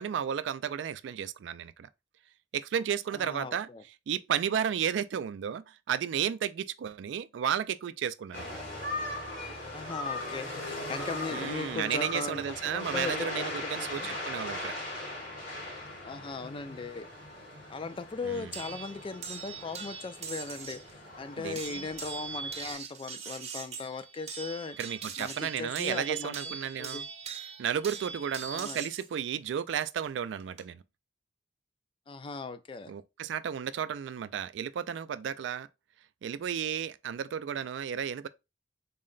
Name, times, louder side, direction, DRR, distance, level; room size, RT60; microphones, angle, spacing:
voice 1, 0.0-1.9 2.5-3.7 4.1-8.5 11.3-14.7 18.2-18.6 21.4-21.9 24.8-27.1 27.6-30.8 32.9-35.7 36.2-38.3, right 8 dB, 70° right, 0.3 m, -33 dB
voice 2, 3.1-3.8 9.7-14.1 16.0-17.1 17.7-24.8 25.2-26.5 26.8-27.0 28.5-28.8 32.1-32.9, left 4 dB, 30° left, 0.3 m, -38 dB
sound 1, 8.3-22.7, left 2 dB, 70° left, 2.3 m, -39 dB
sound 2, 18.5-20.9 21.5-29.1 30.2-30.6, right 5 dB, 35° right, 0.7 m, -41 dB
4.0 x 2.1 x 3.7 m
head